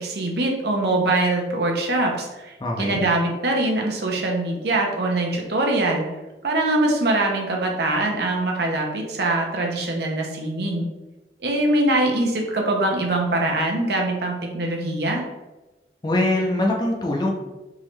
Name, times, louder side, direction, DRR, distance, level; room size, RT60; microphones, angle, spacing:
voice 1, 0.0-6.0 6.4-10.8 11.4-15.2, right 2 dB, 65° right, 0 dB, 0.7 m, -23 dB
voice 2, 2.6-3.1 16.0-17.3, left 1 dB, 25° left, 0 dB, 0.5 m, -22 dB
3.6 x 3.1 x 3.1 m, 1.1 s
head